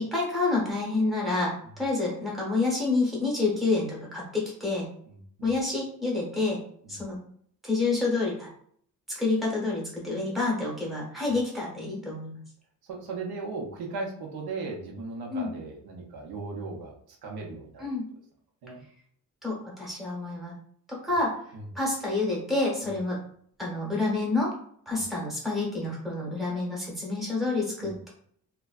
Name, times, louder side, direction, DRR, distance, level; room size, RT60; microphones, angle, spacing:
voice 1, 0.0-4.8 5.4-6.6 6.9-7.2 7.6-8.5 9.2-12.4 15.3-15.5 17.8-18.0 19.4-20.5 20.9-21.3 21.7-23.2 23.6-24.5 24.9-28.1, left 3 dB, ahead, -5 dB, 0.9 m, -28 dB
voice 2, 5.1-5.5 6.8-7.0 12.9-16.9 17.2-17.9 18.6-18.8 21.5-21.6 24.9-25.0 27.8-27.9, right 3 dB, 80° right, 0 dB, 0.8 m, -37 dB
3.2 x 2.2 x 2.3 m, 0.63 s
wide cardioid pair, 150°, 36 cm